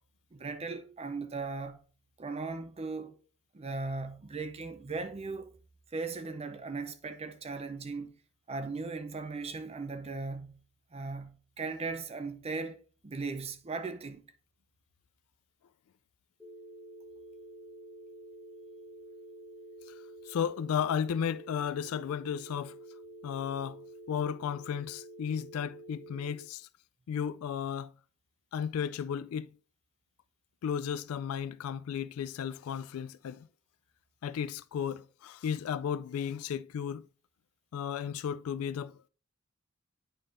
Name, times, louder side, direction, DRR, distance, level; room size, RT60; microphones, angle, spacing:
voice 1, 0.3-1.8 2.2-3.2 3.5-5.5 5.9-8.1 8.5-10.6 10.9-14.2, right 3 dB, 30° right, 0.5 m, -38 dB
sound 1, 16.4-26.4, right 1 dB, 5° left, 1.1 m, -49 dB
voice 2, 20.3-22.7 23.2-23.8 24.1-26.7 27.1-27.9 28.5-29.5 30.6-33.5 34.2-37.1 37.7-38.9, left 8 dB, 75° left, 0.3 m, -34 dB
8.8 x 5.3 x 2.5 m
head